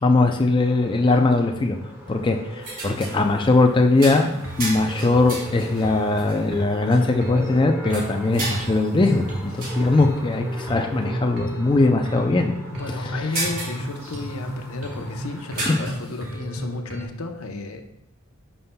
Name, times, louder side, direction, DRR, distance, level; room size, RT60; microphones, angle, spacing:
voice 1, 0.0-1.8 2.1-12.5 13.0-13.2 15.7-15.8, left 2 dB, 20° left, 4 dB, 0.4 m, -20 dB
sound 1, 0.6-15.9, equal, 10° right, 1.7 m, -40 dB
sound 2, 2.6-3.3 4.0-6.4 6.9-7.0 7.9-10.0 10.5-10.6 10.9-11.0 13.0-14.5 15.5-16.2, right 2 dB, 40° right, 2.8 m, -33 dB
sound 3, 4.4-17.0, equal, 75° right, 1.8 m, -33 dB
voice 2, 9.6-9.9 12.7-17.8, left 2 dB, 80° left, 5 dB, 0.8 m, -33 dB
11.0 x 5.6 x 2.2 m, 0.79 s
head